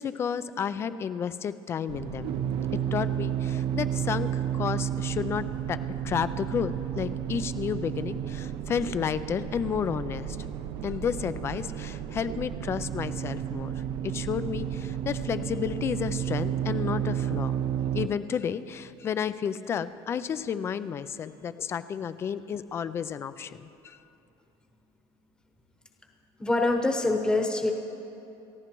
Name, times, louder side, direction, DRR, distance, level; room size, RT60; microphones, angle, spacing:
voice 1, 0.0-2.4 2.7-10.4 10.8-13.7 14.0-17.6 17.9-24.0, left 7 dB, 25° left, 13 dB, 0.4 m, -32 dB
sound 1, 1.9-18.1, right 10 dB, 45° right, 0.6 m, -32 dB
voice 2, 26.4-27.7, left 2 dB, 10° left, 2 dB, 1.0 m, -25 dB
29.0 x 14.5 x 3.0 m, 2.9 s
cardioid pair, 175°, 11 cm